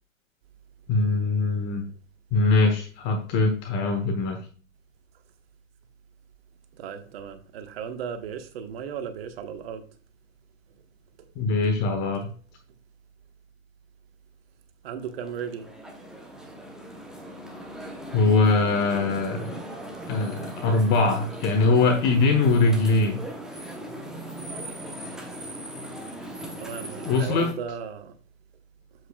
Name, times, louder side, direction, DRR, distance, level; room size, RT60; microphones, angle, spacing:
voice 1, 0.9-1.8 2.3-4.4 11.4-12.3 18.1-19.6 20.1-23.2 27.0-27.5, left 3 dB, 25° left, 1.1 m, -22 dB
voice 2, 6.7-9.9 14.8-15.7 26.6-28.2, right 7 dB, 45° right, 1.3 m, -36 dB
sound 1, 15.0-27.5, right 1 dB, ahead, 0.7 m, -39 dB
7.9 x 7.6 x 2.3 m
figure-of-eight pair, 120°, 40 cm